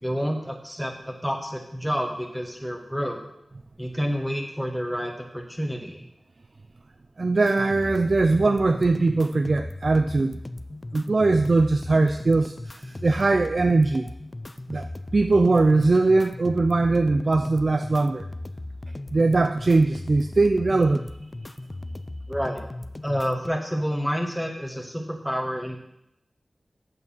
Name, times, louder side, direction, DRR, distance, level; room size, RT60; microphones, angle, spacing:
voice 1, 0.0-3.2 3.8-6.1 22.3-22.6 23.0-25.8, equal, ahead, 0 dB, 1.4 m, -29 dB
voice 2, 7.2-10.4 10.9-14.1 14.7-18.3 19.1-21.2, right 3 dB, 55° right, 8 dB, 0.4 m, -21 dB
sound 1, 7.5-23.5, left 2 dB, 30° left, 0.4 m, -37 dB
8.4 x 6.7 x 5.5 m, 0.81 s
wide cardioid pair, 65°, 0 cm